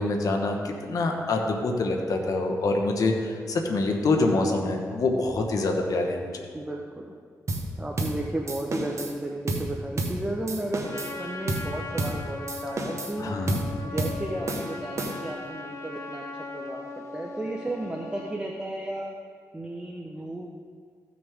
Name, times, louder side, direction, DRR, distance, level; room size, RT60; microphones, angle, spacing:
voice 1, 0.0-6.4 13.2-13.6, left 2 dB, 65° left, 2 dB, 1.3 m, -26 dB
voice 2, 6.5-7.1 7.8-13.3 13.8-19.1 19.5-20.5, right 1 dB, 15° right, 0 dB, 1.1 m, -34 dB
sound 1, 7.5-7.7 8.0-8.2 8.5-9.1 9.5-9.7 10.0-10.2 10.5-11.1 11.5-11.7 12.0-12.2 12.5-13.2 13.5-13.7 14.0-14.2 14.5-15.4, right 2 dB, 50° right, 1.5 m, -30 dB
Trumpet, 10.8-18.4, left 3 dB, 50° left, 1.3 m, -39 dB
15.5 x 6.2 x 3.7 m, 2.1 s
cardioid pair, 60°, 6 cm